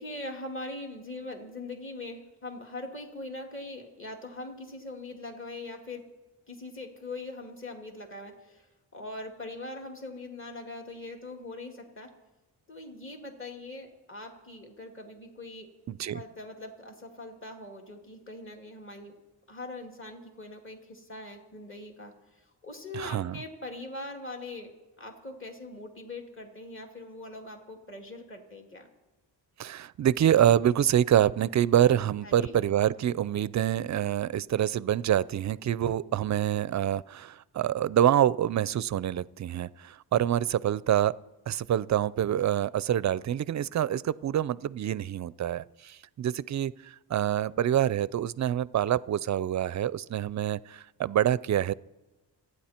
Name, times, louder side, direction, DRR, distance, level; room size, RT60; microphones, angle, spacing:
voice 1, 0.0-6.1 6.5-8.7 8.9-12.1 12.7-15.7 16.1-19.1 19.5-24.7 25.0-28.9 32.2-32.6, left 2 dB, 30° left, 2 dB, 2.6 m, -42 dB
voice 2, 15.9-16.2 22.9-23.4 29.6-41.1 41.5-51.7, right 11 dB, 45° right, 20 dB, 0.5 m, -26 dB
28.5 x 9.9 x 4.4 m, 1.1 s
cardioid pair, 110°, 40 cm